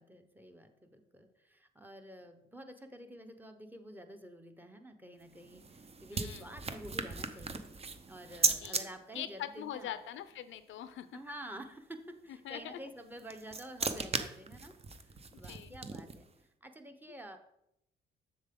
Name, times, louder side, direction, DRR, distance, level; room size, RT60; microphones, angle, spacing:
voice 1, 0.0-10.0 11.1-14.7 15.0-16.2 16.6-17.4, right 1 dB, 10° right, 6 dB, 1.0 m, -49 dB
sound 1, 5.2-8.8 13.0-16.3, right 4 dB, 30° right, 0.8 m, -37 dB
voice 2, 6.1-6.4 8.6-8.8 9.1-11.1 12.4-12.8 15.3-15.8, left 11 dB, 75° left, 12 dB, 0.6 m, -42 dB
7.3 x 6.7 x 3.8 m, 0.79 s
cardioid pair, 90°, 20 cm